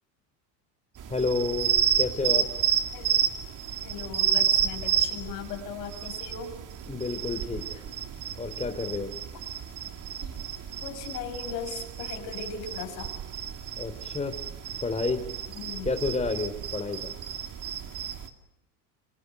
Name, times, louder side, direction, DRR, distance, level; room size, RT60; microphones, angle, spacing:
sound 1, 1.0-18.3, right 9 dB, 40° right, 2.6 m, -31 dB
voice 1, 1.1-1.7 2.0-2.5 6.9-7.8 8.4-9.1 13.8-14.3 14.8-15.2 15.8-17.1, left 3 dB, 15° left, 7 dB, 3.0 m, -30 dB
voice 2, 3.8-6.5 10.2-10.4 10.8-13.1 15.5-15.9, left 6 dB, 85° left, 4 dB, 6.5 m, -38 dB
27.0 x 25.5 x 7.9 m, 0.85 s
supercardioid pair, 100°, 48 cm